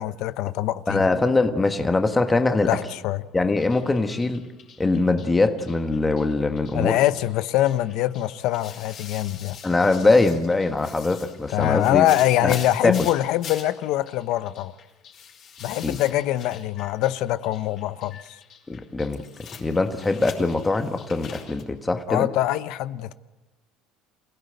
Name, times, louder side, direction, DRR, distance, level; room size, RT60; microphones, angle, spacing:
voice 1, 0.0-1.1 2.7-3.2 6.7-9.6 11.5-14.7 15.6-18.2 22.1-23.1, left 14 dB, 70° left, 0.9 m, -24 dB
voice 2, 0.9-2.7 3.3-4.4 4.8-7.0 9.6-12.0 12.4-12.5 12.8-13.1 15.8-16.0 18.7-19.2 19.6-22.3, left 3 dB, 15° left, 1.5 m, -22 dB
sound 1, 3.6-21.6, left 7 dB, 45° left, 5.3 m, -44 dB
27.5 x 16.5 x 8.0 m
cardioid pair, 125°, 0 cm